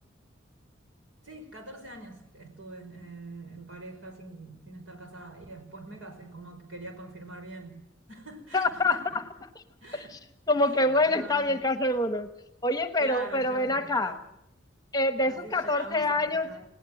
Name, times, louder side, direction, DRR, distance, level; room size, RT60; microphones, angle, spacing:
voice 1, 1.2-7.8 8.1-9.2 9.8-10.2 10.6-11.6 13.0-14.2 15.3-16.7, right 2 dB, 85° right, 5 dB, 5.3 m, -44 dB
voice 2, 8.5-9.2 9.9-10.0 10.5-12.3 12.6-14.2 14.9-16.5, left 2 dB, 20° left, 9 dB, 1.2 m, -26 dB
19.0 x 18.0 x 7.8 m, 0.81 s
head